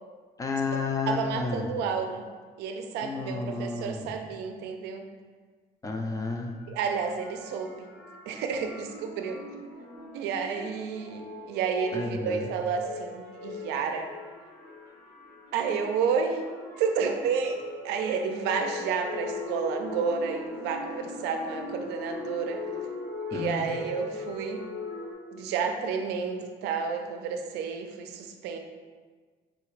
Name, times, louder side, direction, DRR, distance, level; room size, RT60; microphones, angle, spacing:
voice 1, 0.4-1.7 3.0-4.1 5.8-6.5 11.9-12.5 23.3-23.7, left 4 dB, 20° left, 3 dB, 0.4 m, -31 dB
voice 2, 1.1-2.3 2.6-5.0 6.7-7.9 8.3-9.4 10.1-14.1 15.5-16.4 16.8-22.6 23.3-24.6 25.3-28.6, right 6 dB, 85° right, 4 dB, 0.4 m, -30 dB
sound 1, 6.2-25.1, left 2 dB, 90° left, 0.9 m, -40 dB
3.7 x 2.4 x 3.0 m, 1.5 s
cardioid pair, 110°, 17 cm